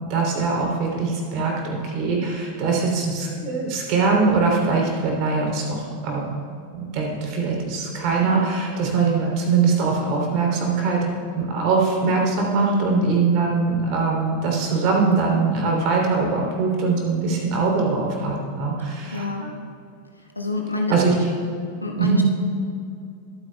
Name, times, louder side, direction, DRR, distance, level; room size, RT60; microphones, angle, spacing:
voice 1, 0.1-6.2 6.7-19.5 20.9-21.1 21.9-22.2, right 4 dB, 45° right, 0 dB, 3.1 m, -22 dB
voice 2, 12.6-13.0 19.1-19.5 20.4-20.9 21.8-22.2, left 3 dB, 85° left, 1 dB, 1.3 m, -26 dB
22.0 x 9.6 x 2.3 m, 2.5 s
figure-of-eight pair, 90°, 0 cm